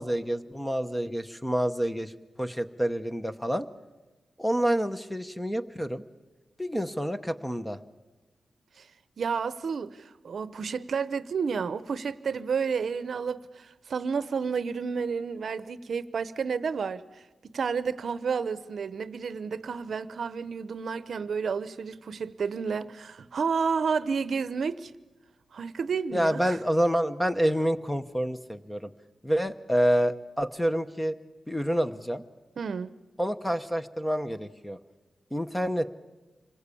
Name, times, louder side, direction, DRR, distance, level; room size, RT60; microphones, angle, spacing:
voice 1, 0.0-2.1 2.4-3.7 4.4-6.0 6.6-7.8 26.1-28.9 29.2-31.1 31.5-32.2 33.2-34.8 35.3-35.9, equal, 5° left, 0.9 m, -28 dB
voice 2, 9.2-17.0 17.5-24.9 25.5-26.6 32.6-32.9, right 5 dB, 65° right, 0.8 m, -31 dB
26.5 x 21.5 x 8.5 m
wide cardioid pair, 155°, 0 cm